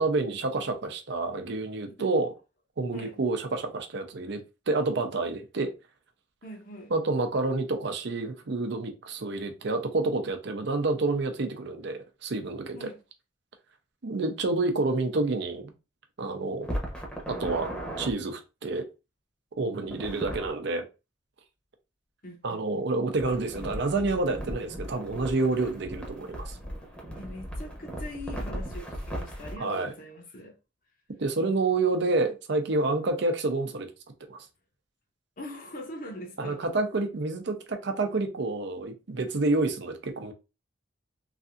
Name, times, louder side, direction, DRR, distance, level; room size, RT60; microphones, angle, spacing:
voice 1, 0.0-2.3 2.8-4.4 4.7-5.7 6.9-12.9 14.0-15.7 16.2-16.7 17.3-17.7 18.0-18.9 19.6-20.8 22.4-26.6 29.6-29.9 31.2-33.9 34.3-34.5 36.4-40.3, right 3 dB, 60° right, 0.6 m, -28 dB
voice 2, 6.4-6.9 12.7-13.0 22.2-22.9 27.1-30.6 35.4-36.7, left 1 dB, 45° left, 0.7 m, -42 dB
sound 1, 16.6-18.1 19.8-20.5 23.2-29.6, equal, 5° left, 0.8 m, -37 dB
3.2 x 2.6 x 2.4 m
head